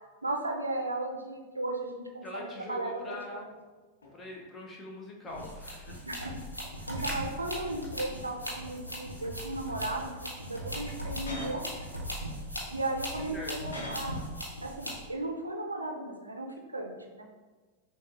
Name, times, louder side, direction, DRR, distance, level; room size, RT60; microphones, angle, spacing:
voice 1, 0.2-3.4 6.1-6.3 6.9-11.6 12.7-14.2 14.6-17.2, right 2 dB, 80° right, 2 dB, 0.5 m, -35 dB
voice 2, 2.2-3.6 4.1-6.1 13.3-13.6, left 2 dB, 20° left, -1 dB, 0.7 m, -43 dB
sound 1, 3.4-3.5 4.0-4.5 5.3-6.8 7.2-8.2 8.6-9.2 9.9-10.2 10.9-11.7 12.4-14.3 14.6-14.9, left 1 dB, 70° left, 0.8 m, -47 dB
sound 2, 5.3-15.1, equal, 85° left, 1.0 m, -39 dB
6.2 x 2.3 x 2.6 m, 1.3 s
figure-of-eight pair, 90°, 0 cm